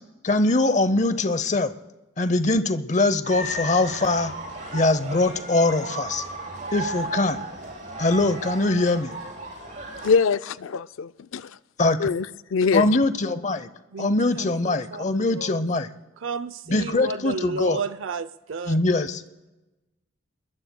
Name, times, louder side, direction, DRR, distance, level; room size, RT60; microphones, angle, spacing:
voice 1, 0.2-1.7 2.2-4.3 4.7-6.2 6.7-7.4 8.0-9.2 11.8-12.1 12.7-13.7 14.0-15.9 16.7-17.8 18.7-19.2, left 2 dB, 35° left, 0.7 m, -22 dB
sound 1, 3.2-10.1, right 1 dB, 40° right, 7.6 m, -35 dB
voice 2, 10.0-11.5 12.0-12.3 12.5-12.9, left 5 dB, 80° left, 0.4 m, -23 dB
voice 3, 13.9-15.5 16.2-18.8, right 5 dB, 75° right, 0.5 m, -33 dB
28.5 x 22.0 x 2.2 m
head